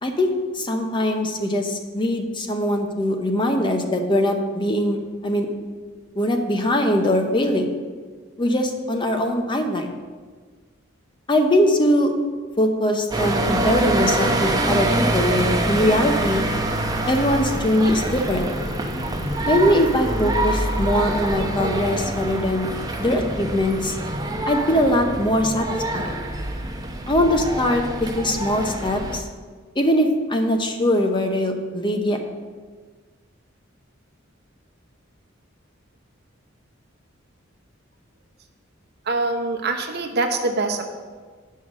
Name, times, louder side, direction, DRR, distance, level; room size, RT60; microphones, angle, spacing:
voice 1, 0.0-5.0 5.2-5.5 6.2-7.7 8.4-9.9 11.3-12.1 12.6-16.4 17.1-18.4 19.5-22.7 23.0-24.0 24.4-25.7 25.9-26.1 27.1-29.3 29.8-32.2, left 1 dB, 25° left, 4 dB, 0.8 m, -21 dB
sound 1, 13.1-29.2, right 1 dB, 20° right, 0.8 m, -25 dB
voice 2, 39.1-40.9, right 3 dB, 55° right, 4 dB, 0.9 m, -24 dB
8.5 x 5.6 x 6.3 m, 1.5 s
head